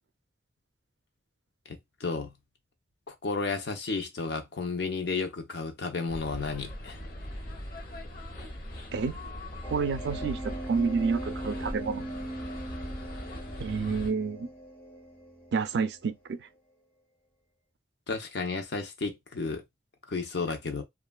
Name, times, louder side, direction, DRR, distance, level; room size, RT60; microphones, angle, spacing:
voice 1, 1.7-2.3 3.1-7.0 18.1-19.6 20.1-20.8, left 4 dB, 75° left, 0.7 m, -32 dB
sound 1, 6.1-14.1, left 1 dB, 50° left, 0.9 m, -40 dB
sound 2, 9.6-16.1, right 1 dB, 10° left, 0.6 m, -40 dB
voice 2, 9.7-12.1 13.6-14.5 15.5-16.5, right 5 dB, 75° right, 0.4 m, -29 dB
3.1 x 2.4 x 2.2 m
head